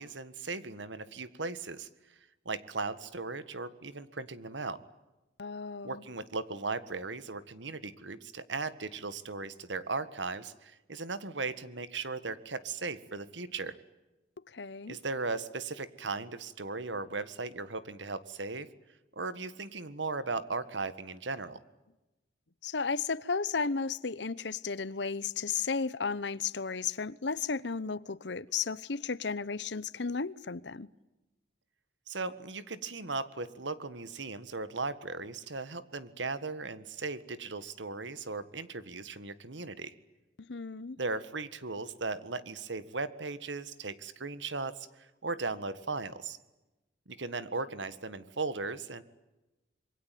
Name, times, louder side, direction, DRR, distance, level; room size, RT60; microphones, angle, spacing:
voice 1, 0.0-1.9 2.4-4.8 5.8-13.7 14.9-18.7 19.1-21.6 32.1-39.9 41.0-46.4 47.1-49.0, right 3 dB, 80° right, 1.7 m, -37 dB
voice 2, 5.4-6.0 14.5-15.0 22.6-30.9 40.5-41.0, left 5 dB, 65° left, 0.9 m, -34 dB
26.5 x 23.5 x 9.3 m
head